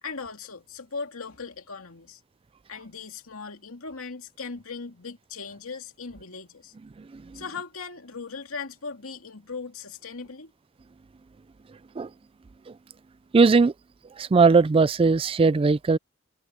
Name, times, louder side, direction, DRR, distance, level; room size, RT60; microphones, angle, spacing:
voice 1, 0.0-2.2 2.7-6.7 7.3-10.5, left 4 dB, 85° left, 2.4 m, -38 dB
voice 2, 13.3-13.7 14.2-16.0, right 4 dB, 25° right, 0.3 m, -19 dB
head